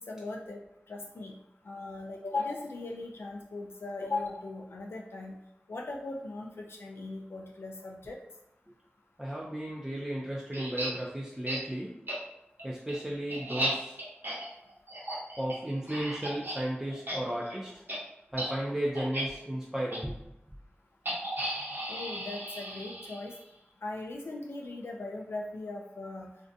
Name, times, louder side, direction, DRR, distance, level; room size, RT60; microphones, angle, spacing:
voice 1, 0.1-0.6 0.9-1.3 1.7-5.3 5.7-8.2 21.9-23.3 23.8-26.3, left 2 dB, 75° left, -1 dB, 0.3 m, -38 dB
voice 2, 9.2-11.9 12.6-14.0 15.4-17.8 18.3-20.1, right 1 dB, 15° right, -4 dB, 0.4 m, -34 dB
sound 1, 10.5-10.9 11.5-11.6 12.1-12.2 12.6-16.6 16.9-17.2 17.4-17.6 17.9-18.0 18.3-18.5 19.0-19.2 19.9-20.0 21.1-23.4, right 1 dB, 55° right, 0.8 m, -35 dB
2.5 x 2.2 x 2.5 m, 0.84 s
wide cardioid pair, 45°, 4 cm